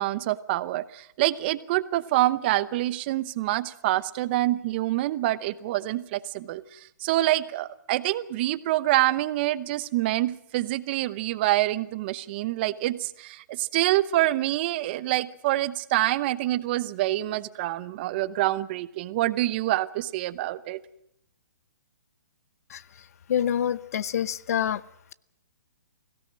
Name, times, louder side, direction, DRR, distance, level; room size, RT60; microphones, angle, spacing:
voice 1, 0.0-20.8, right 16 dB, 35° right, 16 dB, 0.8 m, -26 dB
voice 2, 23.3-24.8, left 9 dB, 55° left, 18 dB, 0.8 m, -26 dB
22.5 x 17.0 x 7.6 m, 0.78 s
hypercardioid pair, 150°, 10 cm